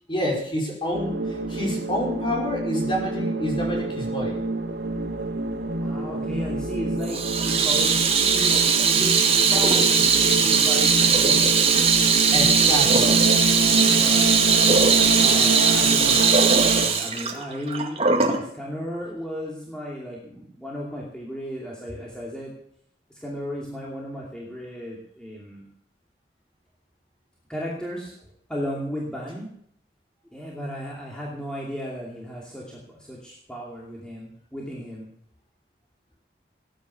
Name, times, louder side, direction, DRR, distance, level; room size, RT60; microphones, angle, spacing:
voice 1, 0.1-1.2 1.5-4.4 12.3-13.2, equal, 30° left, -1 dB, 4.9 m, -28 dB
sound 1, 0.9-16.9, right 2 dB, 90° right, 2.0 m, -27 dB
voice 2, 5.8-11.6 13.9-16.3 16.8-22.5 23.1-25.6 27.5-28.2 28.5-29.5 30.3-35.1, equal, 5° left, -4 dB, 2.6 m, -35 dB
Water tap faucet / Sink (filling or washing), 7.1-18.4, right 5 dB, 35° right, 2.0 m, -19 dB
17.5 x 9.7 x 6.9 m, 0.67 s
head